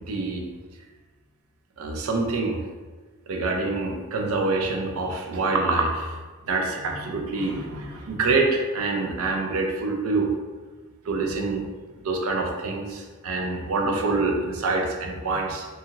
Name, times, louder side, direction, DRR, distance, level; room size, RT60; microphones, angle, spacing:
voice 1, 0.1-0.5 1.8-2.6 3.3-6.2 6.5-10.3 11.1-11.6 12.0-15.7, right 3 dB, 80° right, 1 dB, 0.5 m, -26 dB
2.8 x 2.7 x 2.5 m, 1.3 s
head